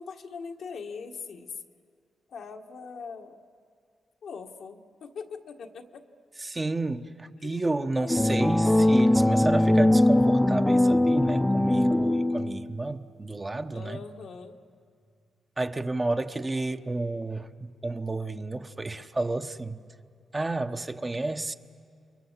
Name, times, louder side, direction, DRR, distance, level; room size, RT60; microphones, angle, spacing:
voice 1, 0.0-1.5 2.3-3.4 4.2-6.0 7.4-7.7 8.0-8.3 13.7-14.6, left 5 dB, 75° left, 1.5 m, -41 dB
voice 2, 6.4-14.0 15.6-19.8 20.3-21.5, right 2 dB, 25° right, 1.0 m, -31 dB
sound 1, 8.1-12.6, left 1 dB, 15° left, 0.8 m, -21 dB
29.5 x 23.5 x 7.4 m
cardioid pair, 60°, 0 cm